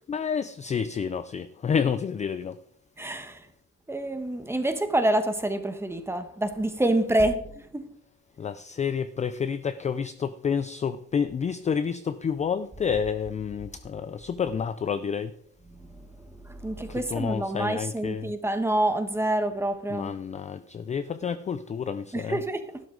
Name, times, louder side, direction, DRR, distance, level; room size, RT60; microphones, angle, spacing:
voice 1, 0.1-2.6 8.4-15.3 16.9-18.3 19.9-22.4, left 6 dB, 20° left, 0.4 m, -29 dB
voice 2, 3.0-3.5 3.9-7.9 15.7-16.0 16.4-20.1 22.1-22.8, right 1 dB, 10° right, 1.3 m, -27 dB
12.5 x 12.0 x 3.9 m
cardioid pair, 140°, 32 cm